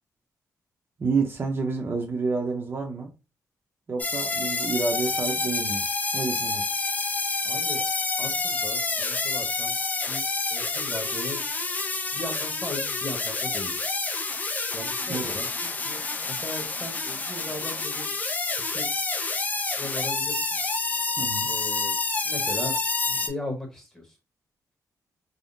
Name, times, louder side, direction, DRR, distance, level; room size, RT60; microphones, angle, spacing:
voice 1, 1.0-3.1 3.9-6.7 15.1-15.3 21.2-21.5, right 4 dB, 35° right, 0.6 m, -29 dB
sound 1, 4.0-23.3, left 3 dB, 25° left, 0.4 m, -28 dB
voice 2, 7.4-7.8 8.2-9.8 10.1-11.4 11.8-13.9 14.7-18.3 18.7-18.9 19.8-20.6 21.4-22.0 22.2-22.7 23.1-24.2, left 1 dB, 10° left, 1.0 m, -38 dB
3.5 x 2.1 x 2.5 m
wide cardioid pair, 130°, 6 cm